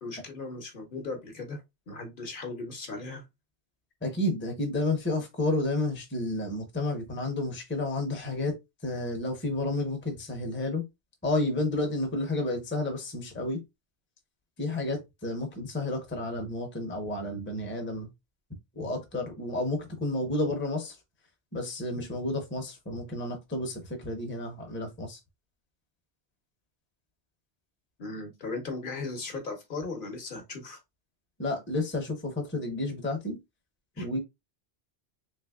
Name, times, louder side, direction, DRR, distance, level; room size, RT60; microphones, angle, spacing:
voice 1, 0.0-1.6 1.9-3.2 28.0-30.8 34.0-34.1, left 3 dB, 55° left, 0.9 m, -37 dB
voice 2, 4.0-8.6 8.8-10.8 11.2-13.6 14.6-18.1 18.8-21.0 21.5-25.2 31.4-33.4 34.0-34.2, left 2 dB, 15° left, 0.6 m, -31 dB
3.3 x 3.1 x 2.2 m
omnidirectional pair, 1.1 m